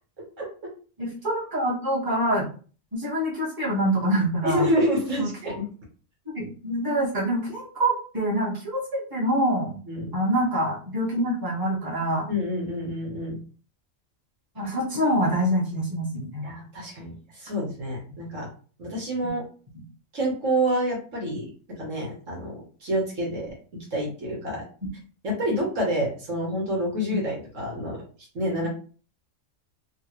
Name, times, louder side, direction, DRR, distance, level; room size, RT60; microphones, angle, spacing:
voice 1, 1.0-2.5 2.9-4.6 5.2-5.6 6.3-9.8 10.1-12.3 14.5-16.5 19.2-19.3, right 1 dB, 15° right, -6 dB, 1.3 m, -25 dB
voice 2, 4.4-5.7 9.9-10.2 12.3-13.4 16.4-18.5 18.8-19.4 20.1-21.5 21.8-23.5 23.9-24.6 25.2-28.0 28.3-28.7, equal, 70° right, -3 dB, 1.7 m, -28 dB
3.7 x 2.5 x 3.1 m, 0.40 s
omnidirectional pair, 1.4 m